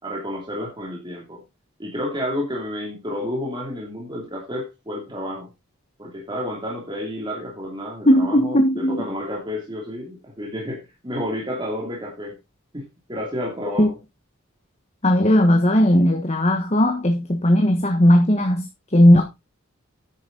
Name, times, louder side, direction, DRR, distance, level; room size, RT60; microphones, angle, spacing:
voice 1, 0.0-1.4 1.8-5.5 6.0-12.4 12.7-14.0, left 1 dB, 20° right, 2.8 m, -30 dB
voice 2, 8.0-9.0 13.8-13.9 15.0-19.2, equal, 30° left, 1.3 m, -17 dB
10.0 x 8.3 x 4.0 m
head